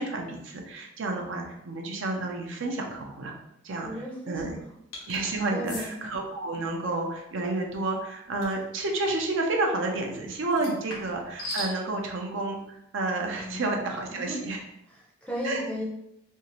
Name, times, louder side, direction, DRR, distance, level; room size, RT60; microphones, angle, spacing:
voice 1, 0.0-3.3 3.6-3.9 4.3-4.6 5.1-14.6 15.4-15.6, right 2 dB, 60° right, 2 dB, 0.5 m, -30 dB
voice 2, 3.8-4.6 5.5-6.0 10.6-10.7 13.3-13.6 14.1-14.5 14.9-15.8, equal, 5° left, -3 dB, 0.5 m, -35 dB
sound 1, 4.9-5.2 5.6-5.9 8.4-8.6 10.5-11.7, left 1 dB, 80° left, 0.9 m, -37 dB
2.6 x 2.4 x 2.9 m, 0.81 s
head